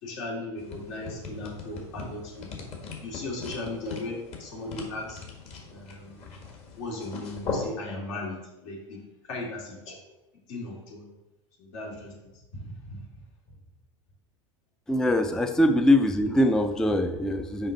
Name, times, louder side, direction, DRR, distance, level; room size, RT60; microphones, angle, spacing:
voice 1, 0.0-2.5 3.0-5.2 5.7-6.3 6.8-8.4 8.6-9.0 9.3-10.0 10.5-11.1 11.6-12.1 12.5-13.0, left 2 dB, 70° left, -1 dB, 2.4 m, -37 dB
sound 1, 0.6-7.7, left 4 dB, 40° left, 1.6 m, -39 dB
voice 2, 14.9-17.7, left 1 dB, 5° left, 8 dB, 0.4 m, -23 dB
5.5 x 5.1 x 3.9 m, 0.98 s
hypercardioid pair, 100°, 16 cm